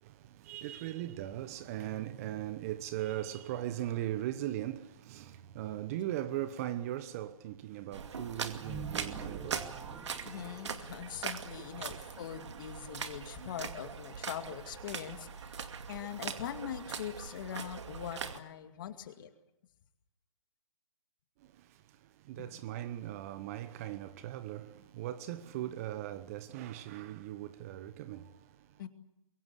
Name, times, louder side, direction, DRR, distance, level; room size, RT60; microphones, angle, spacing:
voice 1, 0.0-10.1 21.4-28.8, right 13 dB, 25° right, 1.0 m, -39 dB
sound 1, 7.9-18.4, right 6 dB, 55° right, 2.4 m, -41 dB
sound 2, 8.6-11.2, right 5 dB, 10° right, 1.9 m, -45 dB
voice 2, 10.2-19.3 22.4-22.5 28.8-28.9, left 10 dB, 35° left, 2.2 m, -42 dB
23.5 x 23.0 x 8.2 m
figure-of-eight pair, 145°, 18 cm